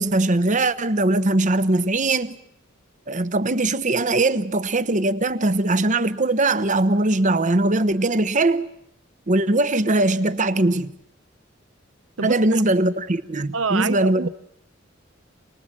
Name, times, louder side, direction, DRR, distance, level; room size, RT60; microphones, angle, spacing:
voice 1, 0.0-2.4 3.1-8.7 9.3-10.9 12.2-14.3, right 2 dB, 40° right, 1.0 m, -21 dB
voice 2, 12.2-12.6 13.5-14.3, right 5 dB, 85° right, 0.9 m, -26 dB
28.5 x 20.5 x 7.4 m
head